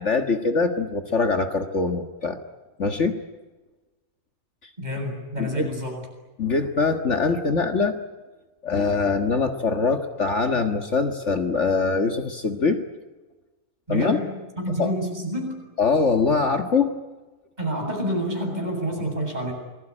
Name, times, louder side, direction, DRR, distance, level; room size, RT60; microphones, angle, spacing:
voice 1, 0.0-2.4 2.8-3.2 5.4-5.7 6.4-8.0 8.6-12.8 13.9-14.2 14.8-14.9 15.8-16.9, left 4 dB, 50° left, 6 dB, 1.9 m, -23 dB
voice 2, 4.8-6.1 13.9-15.6 17.6-19.5, equal, 30° right, 1 dB, 8.0 m, -28 dB
28.0 x 20.5 x 9.9 m, 1.2 s
omnidirectional pair, 1.6 m